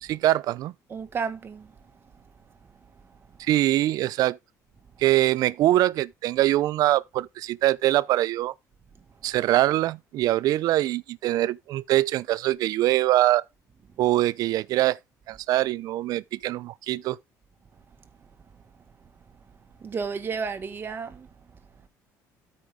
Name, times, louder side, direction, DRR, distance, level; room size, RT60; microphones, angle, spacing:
voice 1, 0.0-0.7 3.4-4.4 5.0-8.5 9.2-13.4 14.0-15.0 15.3-17.2, right 15 dB, 65° right, 0.5 m, -23 dB
voice 2, 0.9-1.7 19.8-21.3, right 5 dB, 35° right, 1.4 m, -32 dB
13.0 x 5.2 x 3.6 m
cardioid pair, 120°, 7 cm